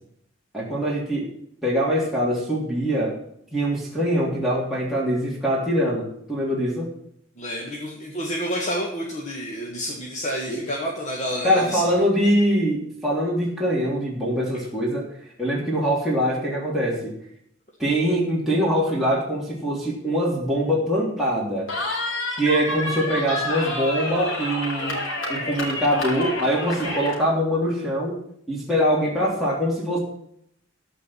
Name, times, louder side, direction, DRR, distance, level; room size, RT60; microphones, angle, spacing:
voice 1, 0.5-1.3 1.6-3.2 3.5-6.9 10.5-10.6 11.4-15.1 15.4-17.1 17.8-21.7 22.4-25.0 25.3-28.2 28.5-30.0, equal, ahead, -6 dB, 3.3 m, -23 dB
voice 2, 7.4-12.0, equal, 35° left, -2 dB, 2.0 m, -29 dB
Cheering, 21.7-27.2, left 1 dB, 80° left, 3.8 m, -28 dB
14.5 x 5.4 x 8.7 m, 0.72 s
head